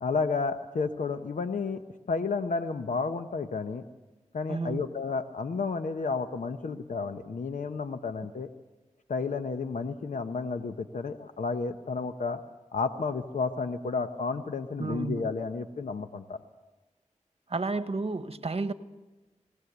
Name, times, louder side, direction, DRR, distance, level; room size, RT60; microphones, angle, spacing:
voice 1, 0.0-1.8 2.1-3.8 4.3-8.5 9.1-12.4 12.7-16.4, left 4 dB, 90° left, 8 dB, 0.9 m, -31 dB
voice 2, 4.5-4.9 14.8-15.3 17.5-18.7, right 3 dB, 50° right, 11 dB, 1.2 m, -31 dB
20.0 x 17.5 x 8.0 m, 1.1 s
cardioid pair, 45°, 13 cm